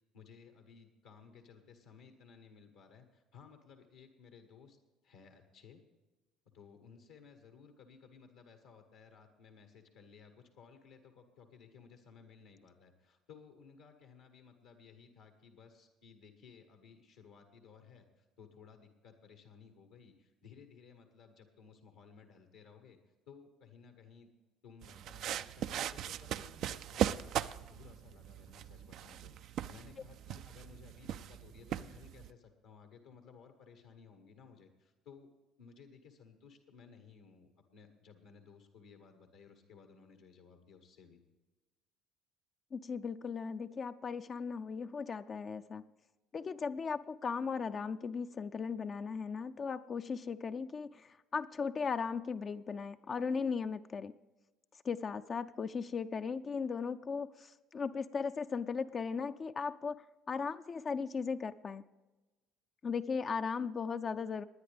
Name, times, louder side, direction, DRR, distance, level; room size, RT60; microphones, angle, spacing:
voice 1, 0.1-4.8 5.0-5.8 6.5-23.0 23.3-24.3 24.6-35.3 35.6-41.2, left 6 dB, 75° left, 6 dB, 1.3 m, -58 dB
sound 1, 24.8-32.3, right 10 dB, 60° right, 0.4 m, -39 dB
voice 2, 42.7-45.8 46.3-54.1 54.8-61.8 62.8-64.4, left 5 dB, 40° left, 9 dB, 0.4 m, -37 dB
19.5 x 9.9 x 3.4 m, 1.1 s
hypercardioid pair, 60°, 0 cm